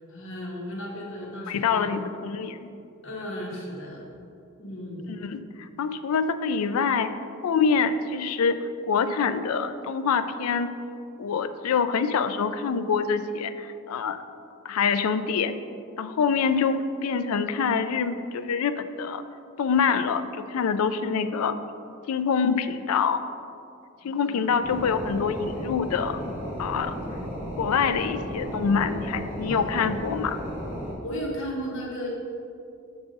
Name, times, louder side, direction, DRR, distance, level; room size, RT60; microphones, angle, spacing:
voice 1, 0.1-1.9 3.0-4.0 4.6-5.1 24.0-24.5 29.5-29.9 31.0-32.1, equal, 60° left, -3 dB, 1.3 m, -35 dB
voice 2, 1.5-2.6 5.2-7.1 7.4-8.6 8.9-10.7 11.2-14.2 14.6-15.5 16.0-19.2 19.6-21.6 22.1-23.2 24.0-26.2 26.6-26.9 27.6-30.4, left 6 dB, 85° left, 11 dB, 0.4 m, -25 dB
sound 1, 24.6-30.9, equal, 10° right, 1.4 m, -34 dB
7.1 x 3.6 x 5.2 m, 2.5 s
head